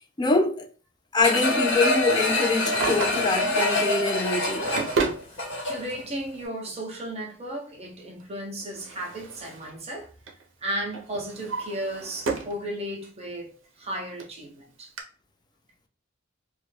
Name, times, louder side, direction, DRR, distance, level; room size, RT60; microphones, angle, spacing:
voice 1, 0.2-0.7 1.1-4.7, left 3 dB, 20° left, 0.4 m, -24 dB
sound 1, 1.2-6.0 6.4-6.5, left 2 dB, 75° left, 1.2 m, -25 dB
Drawer open or close, 2.4-3.6 4.3-5.3 6.3-6.4 8.2-9.7 10.0-10.4 10.9-12.6 13.0-13.1 13.9-14.0 14.2-14.3 15.0-15.1, right 4 dB, 70° right, 0.6 m, -32 dB
voice 2, 5.6-10.1 10.6-14.9, right 1 dB, 35° right, 0.7 m, -34 dB
2.5 x 2.2 x 3.1 m
head